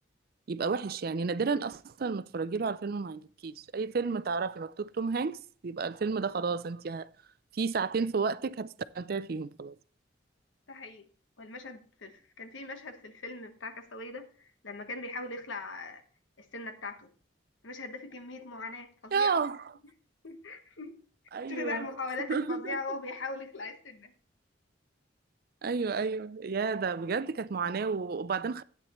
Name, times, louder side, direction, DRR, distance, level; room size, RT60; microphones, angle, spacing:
voice 1, 0.5-7.1 7.5-9.7 19.1-19.6 21.3-21.9 22.3-22.8 25.6-28.6, right 5 dB, 50° right, 0.4 m, -31 dB
voice 2, 10.7-11.1 11.4-16.0 16.4-17.1 17.6-19.5 20.2-21.0 21.5-24.1, left 3 dB, 90° left, 1.2 m, -40 dB
13.0 x 8.8 x 3.1 m
head